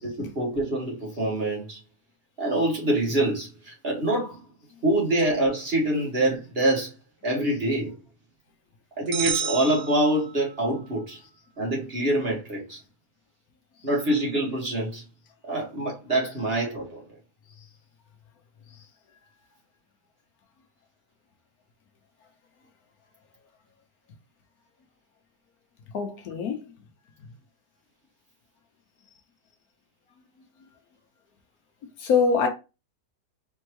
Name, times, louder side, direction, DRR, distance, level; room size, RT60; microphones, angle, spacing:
voice 1, 0.0-1.8 2.4-4.4 4.8-6.9 7.2-7.9 9.0-11.2 11.6-12.8 13.8-15.0 15.5-17.0, right 1 dB, 35° right, 1.9 m, -25 dB
sound 1, 9.1-10.7, right 8 dB, 80° right, 1.5 m, -31 dB
voice 2, 25.9-26.6 32.0-32.5, left 5 dB, 70° left, 1.2 m, -23 dB
4.4 x 3.5 x 3.1 m
omnidirectional pair, 1.7 m